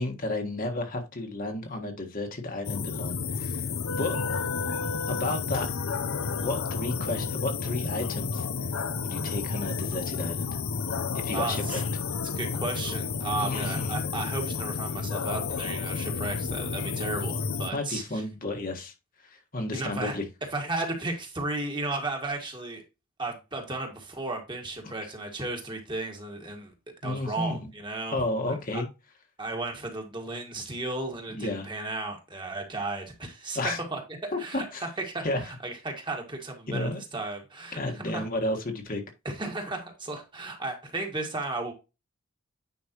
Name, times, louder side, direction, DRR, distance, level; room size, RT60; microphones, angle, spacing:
voice 1, 0.0-3.7 4.0-4.2 5.1-5.7 6.4-8.5 9.0-10.5 11.1-11.8 13.4-14.1 17.7-18.9 19.2-20.3 24.8-25.1 27.0-27.7 28.1-28.9 31.3-31.7 33.5-33.8 34.3-34.8 35.2-35.5 36.7-37.0 37.7-39.0, left 2 dB, 40° left, 1.5 m, -32 dB
sound 1, 2.6-17.7, left 5 dB, 65° left, 0.7 m, -31 dB
voice 2, 11.3-11.8 12.3-18.2 19.7-20.2 20.5-22.8 23.2-26.7 27.0-28.2 28.5-28.8 29.4-33.6 33.9-38.2 39.3-41.7, right 2 dB, 20° right, 1.8 m, -34 dB
9.6 x 5.3 x 3.0 m
head